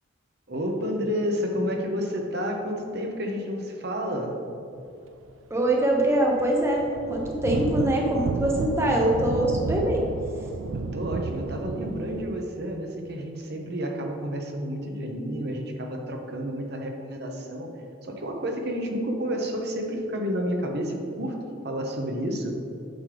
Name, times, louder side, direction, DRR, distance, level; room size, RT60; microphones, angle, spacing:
voice 1, 0.5-4.4 10.7-17.7 18.0-21.4 21.6-22.5, equal, 55° right, 2 dB, 0.9 m, -30 dB
voice 2, 5.5-10.0, right 1 dB, 15° right, -1 dB, 0.7 m, -23 dB
sound 1, 5.6-5.7 6.0-12.2, right 4 dB, 80° right, 0.4 m, -31 dB
9.2 x 6.4 x 3.4 m, 2.8 s
head